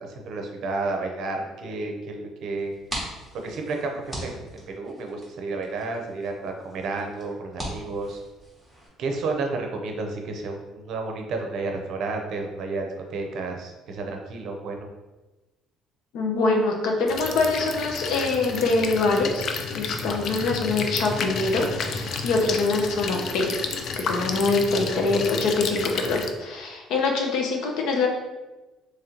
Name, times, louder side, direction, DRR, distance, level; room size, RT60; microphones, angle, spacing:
voice 1, 0.0-2.7 3.3-8.2 9.0-14.9, right 3 dB, 50° right, 3 dB, 0.6 m, -31 dB
sound 1, 2.6-8.9, right 1 dB, 5° left, 1.0 m, -40 dB
voice 2, 16.1-19.5 19.7-23.5 24.0-28.1, left 3 dB, 70° left, 2 dB, 0.7 m, -24 dB
sound 2, 17.1-26.3, left 5 dB, 45° left, 0.3 m, -31 dB
3.1 x 2.9 x 3.7 m, 1.1 s
cardioid pair, 170°, 0 cm